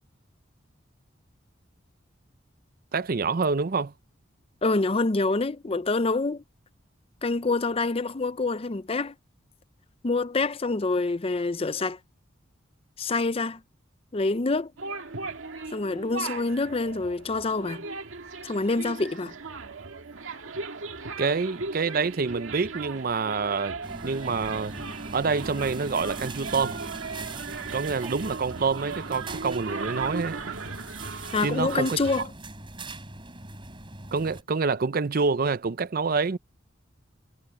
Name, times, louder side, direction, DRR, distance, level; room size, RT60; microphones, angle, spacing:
voice 1, 2.9-3.9 21.2-23.8 24.0-24.7 25.1-26.8 27.7-30.5 31.4-32.3 34.1-36.4, right 4 dB, 50° right, 0.6 m, -27 dB
voice 2, 4.6-6.4 7.2-9.1 10.0-12.0 13.0-13.6 14.1-14.7 15.7-17.8 18.4-19.3 31.3-32.3, left 3 dB, 30° left, 0.6 m, -26 dB
sound 1, 14.8-32.2, right 4 dB, 90° right, 1.9 m, -37 dB
sound 2, 23.8-34.4, right 2 dB, 25° right, 3.8 m, -41 dB
head